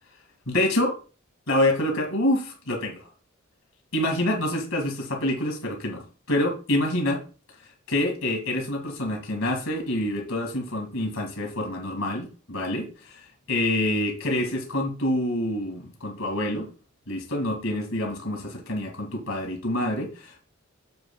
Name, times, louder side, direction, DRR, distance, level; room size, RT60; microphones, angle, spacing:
voice 1, 0.5-1.0 1.5-3.1 3.9-7.2 7.6-16.7 17.1-20.4, left 1 dB, 80° left, 2.1 m, -27 dB
9.2 x 7.3 x 2.3 m
head